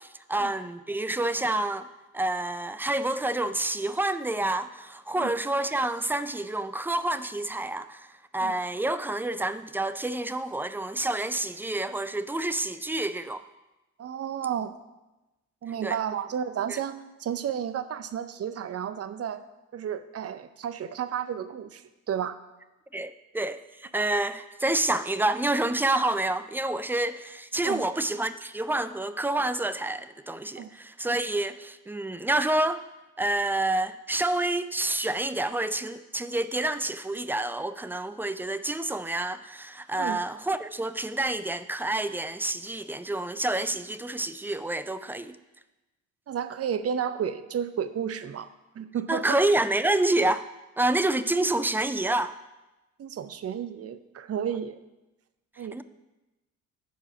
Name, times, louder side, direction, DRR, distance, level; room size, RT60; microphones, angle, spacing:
voice 1, 0.0-1.9 2.1-13.4 15.8-16.0 16.7-16.8 22.9-32.8 33.2-45.4 49.1-50.5 50.8-52.4 55.7-55.8, right 2 dB, 5° right, 13 dB, 0.4 m, -28 dB
voice 2, 14.0-14.7 15.6-19.4 19.7-22.4 27.6-27.8 30.6-30.7 40.0-40.2 46.3-48.5 48.8-49.4 53.0-54.8 55.6-55.8, right 8 dB, 35° right, 12 dB, 0.7 m, -32 dB
10.0 x 4.7 x 5.8 m, 1.0 s
hypercardioid pair, 45°, 41 cm